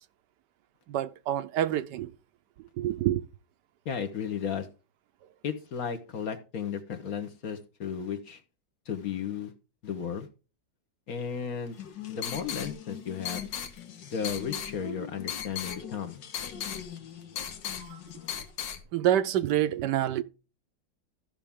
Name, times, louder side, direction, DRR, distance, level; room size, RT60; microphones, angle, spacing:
voice 1, 0.9-2.1 2.6-3.3 17.8-18.0 18.9-20.2, right 12 dB, 75° right, 1.2 m, -27 dB
voice 2, 3.8-4.7 5.4-8.4 8.9-9.5 9.8-10.3 11.1-11.8 12.1-13.4 14.1-16.2, left 7 dB, 55° left, 1.4 m, -34 dB
sound 1, 11.7-18.8, left 9 dB, 80° left, 1.8 m, -38 dB
14.0 x 5.8 x 3.6 m
omnidirectional pair, 1.9 m